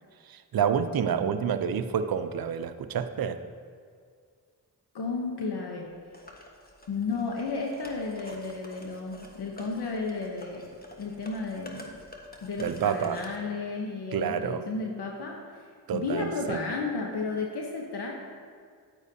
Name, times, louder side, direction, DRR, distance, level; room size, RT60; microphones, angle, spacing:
voice 1, 0.2-3.4 12.6-13.2 14.1-14.7 15.9-16.6, right 7 dB, 60° right, 10 dB, 0.6 m, -28 dB
voice 2, 4.9-5.9 6.9-10.7 11.0-11.9 12.4-15.7 15.9-18.1, left 4 dB, 70° left, 0 dB, 1.0 m, -33 dB
sound 1, 6.1-13.4, left 2 dB, 20° left, 1.3 m, -48 dB
9.2 x 9.0 x 2.8 m, 2.1 s
cardioid pair, 40°, 41 cm